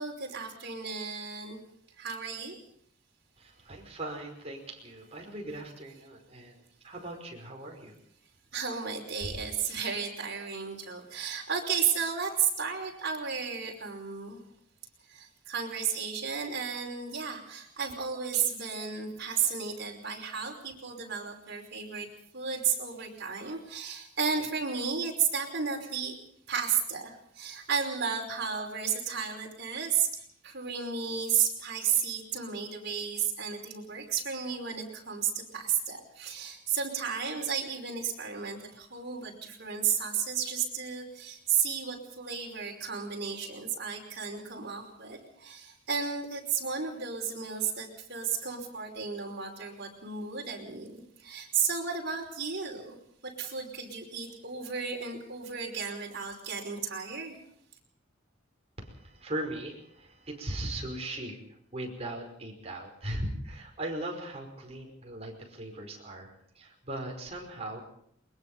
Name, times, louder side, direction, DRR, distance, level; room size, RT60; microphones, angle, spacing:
voice 1, 0.0-1.6 2.0-2.6 8.5-14.4 15.1-22.1 22.3-26.2 26.5-53.0 53.2-57.4, right 6 dB, 60° right, 0 dB, 5.3 m, -33 dB
voice 2, 3.4-7.9 58.8-61.4 61.7-67.8, right 1 dB, 35° right, 1 dB, 5.3 m, -39 dB
22.5 x 21.0 x 5.6 m, 0.68 s
head